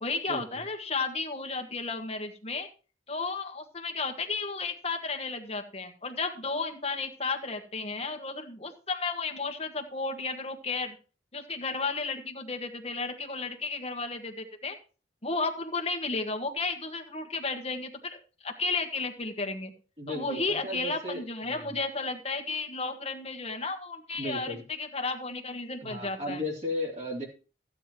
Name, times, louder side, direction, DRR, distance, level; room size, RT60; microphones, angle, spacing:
voice 1, 0.0-2.7 3.1-10.9 11.3-14.8 15.2-19.7 20.1-26.4, left 3 dB, 35° left, 4 dB, 1.5 m, -33 dB
voice 2, 20.0-21.7 24.2-24.6 25.8-27.2, left 1 dB, 40° right, -3 dB, 3.0 m, -35 dB
15.0 x 9.1 x 3.0 m, 0.36 s
head